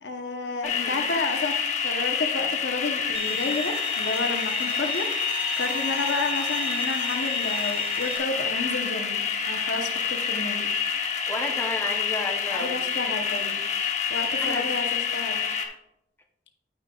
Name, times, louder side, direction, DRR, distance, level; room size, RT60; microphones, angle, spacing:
voice 1, 0.0-10.7 12.5-13.6 14.1-15.4, left 3 dB, 85° left, 5 dB, 0.9 m, -31 dB
sound 1, 0.6-15.7, left 6 dB, 45° left, 0.8 m, -28 dB
voice 2, 0.6-1.2 11.3-13.1 14.4-14.7, left 2 dB, 15° left, 3 dB, 0.7 m, -33 dB
Bowed string instrument, 3.1-8.2, right 6 dB, 30° right, 0.5 m, -37 dB
13.5 x 5.2 x 2.3 m, 0.87 s
head